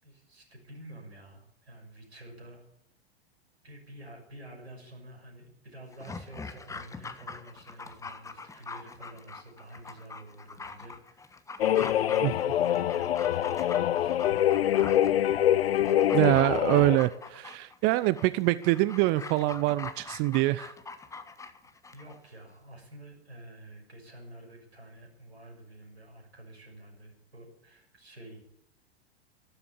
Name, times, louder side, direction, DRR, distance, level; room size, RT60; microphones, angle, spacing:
voice 1, 0.0-2.6 3.6-11.4 11.7-14.7 21.6-28.5, right 1 dB, 80° right, 3 dB, 6.0 m, -49 dB
Dog, 5.9-22.2 22.5-22.6, left 4 dB, 10° left, 1.3 m, -43 dB
sound 1, 11.6-17.0, left 11 dB, 70° left, 0.5 m, -25 dB
voice 2, 16.1-20.7, right 18 dB, 30° right, 17 dB, 0.6 m, -25 dB
14.5 x 13.0 x 7.2 m, 0.79 s
figure-of-eight pair, 100°, 32 cm